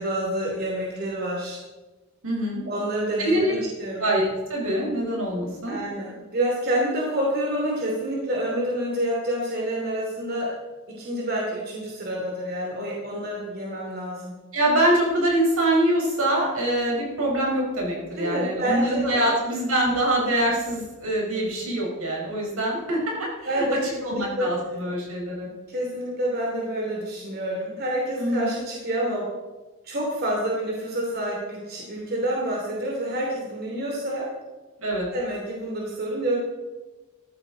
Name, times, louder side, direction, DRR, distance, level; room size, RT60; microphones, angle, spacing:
voice 1, 0.0-1.6 2.7-4.1 5.7-10.5 10.9-14.3 18.2-19.3 23.5-24.5 25.7-29.3 29.8-34.3 35.1-36.4, right 1 dB, 45° right, -2 dB, 2.8 m, -28 dB
voice 2, 2.2-2.6 3.2-3.5 4.0-5.7 14.5-23.3 23.5-25.5 28.2-28.6 34.8-35.1, right 1 dB, 75° right, -2 dB, 4.7 m, -24 dB
14.5 x 13.5 x 4.0 m, 1.2 s
head